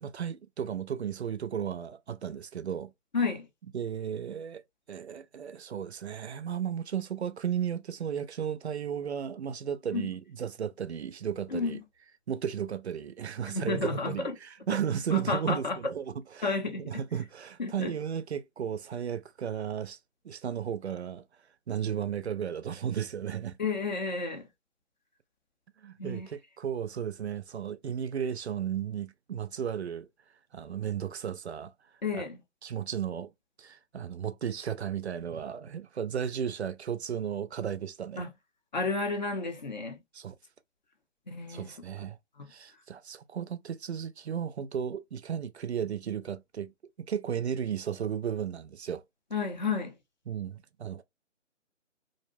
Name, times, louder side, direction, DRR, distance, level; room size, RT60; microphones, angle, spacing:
voice 1, 0.0-2.9 3.7-4.6 4.9-11.8 12.3-16.5 16.8-20.0 20.2-21.2 21.7-23.6 25.8-30.1 30.5-31.7 32.1-32.3 32.6-33.3 33.6-38.3 40.1-40.4 41.5-42.2 42.5-46.7 47.0-49.0 50.3-51.0, right 8 dB, 60° right, 0.5 m, -34 dB
voice 2, 3.1-3.5 9.9-10.1 11.5-11.8 13.5-14.3 15.1-15.8 16.4-16.9 17.6-17.9 23.6-24.5 26.0-26.3 32.0-32.4 38.2-38.3 38.7-40.0 41.3-41.8 42.4-42.5 49.3-50.0, left 4 dB, 35° left, 0.6 m, -31 dB
2.6 x 2.1 x 2.5 m
figure-of-eight pair, 150°, 37 cm